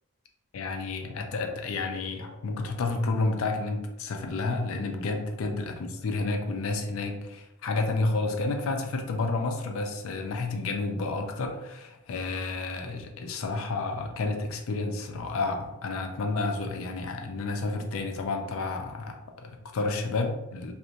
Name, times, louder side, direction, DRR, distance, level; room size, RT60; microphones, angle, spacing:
voice 1, 0.5-20.7, left 3 dB, 70° left, 4 dB, 0.4 m, -30 dB
2.5 x 2.0 x 2.8 m, 0.92 s
head